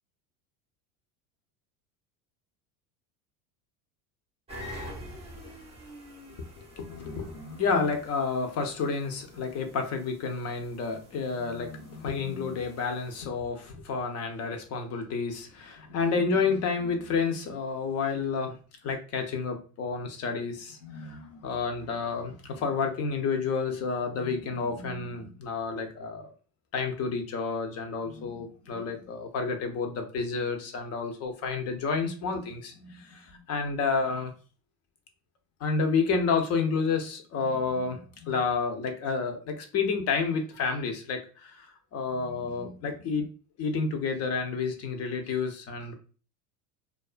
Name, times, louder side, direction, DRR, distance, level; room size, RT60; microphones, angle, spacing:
sound 1, 4.5-13.3, equal, 15° right, 0.7 m, -47 dB
voice 1, 6.6-18.6 18.8-26.3 26.7-34.3 35.6-43.3 43.6-45.9, left 5 dB, 35° left, 5 dB, 0.6 m, -30 dB
2.3 x 2.3 x 2.4 m, 0.38 s
supercardioid pair, 120°, 42 cm